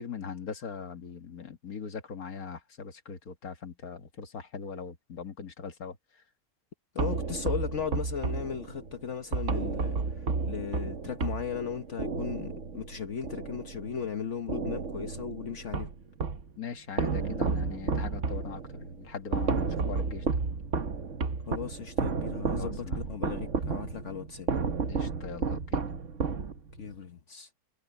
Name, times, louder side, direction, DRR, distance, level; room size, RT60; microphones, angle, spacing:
voice 1, 0.0-6.0 16.6-20.4 22.2-22.3 22.6-23.1 24.8-25.8, left 6 dB, 75° left, 2.0 m, -41 dB
voice 2, 6.9-15.9 21.5-24.5 26.8-27.5, left 7 dB, 55° left, 1.3 m, -36 dB
sound 1, 7.0-14.1 14.5-16.5 17.0-26.9, right 4 dB, 55° right, 1.6 m, -32 dB
omnidirectional pair, 1.6 m